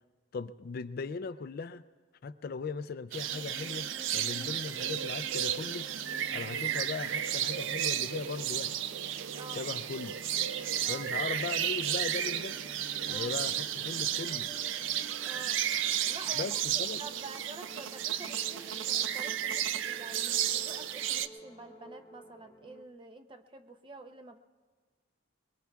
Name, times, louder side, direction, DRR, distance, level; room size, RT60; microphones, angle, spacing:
voice 1, 0.3-1.8 2.2-5.9 6.3-8.7 9.6-10.1 10.9-12.6 13.1-14.5 16.4-17.0, left 4 dB, 45° left, 13 dB, 0.4 m, -38 dB
sound 1, 3.1-21.3, right 10 dB, 65° right, 0.4 m, -33 dB
sound 2, 3.3-22.9, equal, 20° left, 0.7 m, -52 dB
voice 2, 9.3-9.7 10.8-11.0 13.1-13.4 15.2-15.6 16.1-24.4, right 3 dB, 25° right, 6 dB, 0.6 m, -48 dB
23.0 x 21.5 x 2.3 m, 1.5 s
head